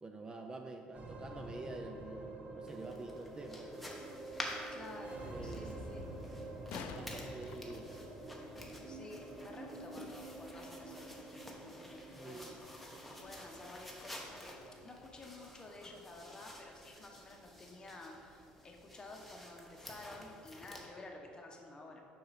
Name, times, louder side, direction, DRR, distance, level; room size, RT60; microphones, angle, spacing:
voice 1, 0.0-3.7 5.2-5.9 6.7-8.0 8.5-8.8 12.1-12.5, right 2 dB, 25° right, 4 dB, 0.5 m, -48 dB
sound 1, 0.9-19.4, right 1 dB, 45° right, 1.0 m, -49 dB
sound 2, 2.7-20.9, left 1 dB, ahead, 1.1 m, -51 dB
sound 3, 3.5-3.6 6.3-8.5 11.3-11.4, left 7 dB, 75° left, 0.4 m, -49 dB
voice 2, 4.7-6.0 8.8-12.6 13.2-14.6 14.8-22.0, left 2 dB, 25° left, 1 dB, 1.0 m, -52 dB
6.6 x 5.8 x 4.2 m, 2.8 s
cardioid pair, 105°, 3 cm